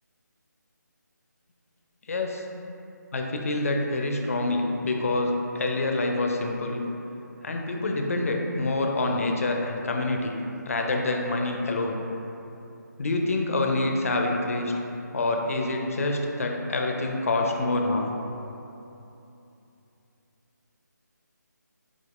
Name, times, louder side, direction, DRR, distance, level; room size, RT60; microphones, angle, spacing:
voice 1, 2.1-2.4 3.1-6.8 7.4-10.4 10.7-12.0 13.0-14.7 15.1-18.1, left 2 dB, 50° left, 2 dB, 0.4 m, -26 dB
3.7 x 3.4 x 2.3 m, 2.9 s
figure-of-eight pair, 165°, 10 cm